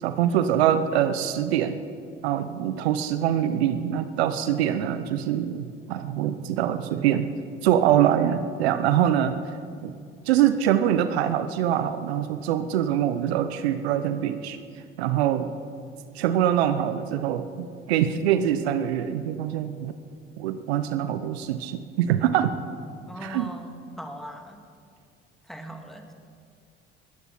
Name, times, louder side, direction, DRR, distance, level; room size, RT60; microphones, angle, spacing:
voice 1, 0.0-1.8 2.2-7.3 7.6-9.4 9.8-10.0 10.3-14.6 15.0-15.5 16.1-19.9 20.4-22.5 23.2-23.5, right 10 dB, 75° right, 11 dB, 0.8 m, -24 dB
voice 2, 23.1-24.6 25.4-26.1, equal, ahead, 4 dB, 2.1 m, -40 dB
19.5 x 15.0 x 4.3 m, 2.2 s
hypercardioid pair, 60°, 32 cm